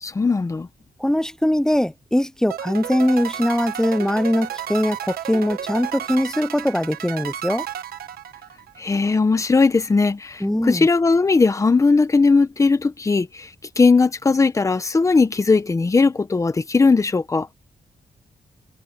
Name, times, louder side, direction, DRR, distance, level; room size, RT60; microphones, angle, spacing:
voice 1, 0.0-0.7 8.8-13.5 13.8-17.5, left 4 dB, 20° left, 1.0 m, -18 dB
voice 2, 1.0-7.7 10.4-10.9, left 1 dB, 5° left, 0.5 m, -21 dB
sound 1, 2.5-8.8, right 10 dB, 85° right, 1.4 m, -32 dB
wide cardioid pair, 170°, 15 cm